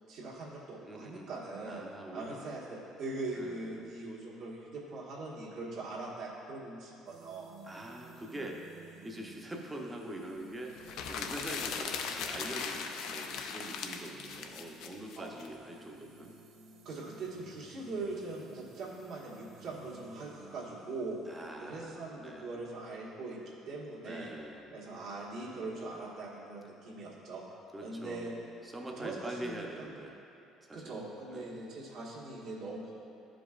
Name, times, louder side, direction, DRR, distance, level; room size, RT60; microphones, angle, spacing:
voice 1, 0.1-1.8 2.1-7.5 15.2-15.3 16.8-21.2 21.6-23.4 23.6-24.3 24.7-27.4 27.8-28.3 29.0-29.9 30.7-32.9, right 2 dB, 60° right, -6 dB, 1.4 m, -41 dB
voice 2, 0.8-1.3 1.6-2.4 3.3-4.0 7.6-8.6 9.0-16.3 21.3-22.6 24.0-24.7 25.5-25.9 27.7-30.2 30.6-31.0 31.3-31.6, right 1 dB, 10° right, 0 dB, 0.7 m, -44 dB
sound 1, 7.0-22.8, right 4 dB, 85° right, 1.1 m, -56 dB
sound 2, 10.8-15.5, left 6 dB, 70° left, 0.5 m, -38 dB
11.5 x 5.1 x 2.4 m, 3.0 s
cardioid pair, 150°, 0 cm